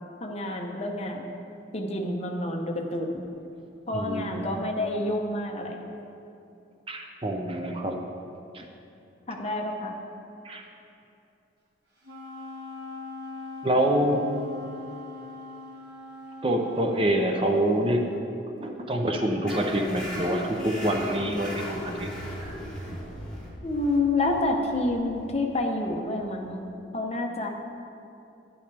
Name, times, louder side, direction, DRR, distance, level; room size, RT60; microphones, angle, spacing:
voice 1, 0.2-1.4 1.7-3.2 3.9-5.8 9.3-9.9 23.6-26.7 26.9-27.5, left 2 dB, 30° left, 2 dB, 0.9 m, -28 dB
voice 2, 3.9-4.5 6.9-8.0 8.5-8.6 10.4-10.6 13.6-14.2 16.4-18.0 18.6-22.1 22.4-22.6, right 1 dB, 30° right, 3 dB, 0.6 m, -26 dB
Wind instrument woodwind instrument, 12.0-18.1, left 2 dB, 55° right, 1.5 m, -41 dB
sound 1, 19.5-26.6, equal, 5° left, 1.8 m, -38 dB
11.5 x 9.9 x 3.4 m, 2.7 s
head